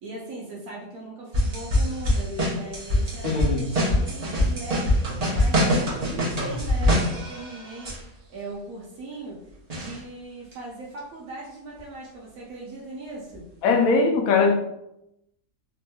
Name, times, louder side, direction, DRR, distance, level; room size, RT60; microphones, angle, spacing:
voice 1, 0.0-7.9 8.3-9.4 9.7-13.5, right 2 dB, 75° right, 1.1 m, -39 dB
sound 1, 1.3-8.0 9.7-10.0 10.5-10.6 11.8-11.9 13.3-13.4, equal, 30° right, 0.8 m, -24 dB
voice 2, 3.2-3.7 13.6-14.5, left 4 dB, 75° left, 1.0 m, -20 dB
3.3 x 2.9 x 2.2 m
omnidirectional pair, 1.5 m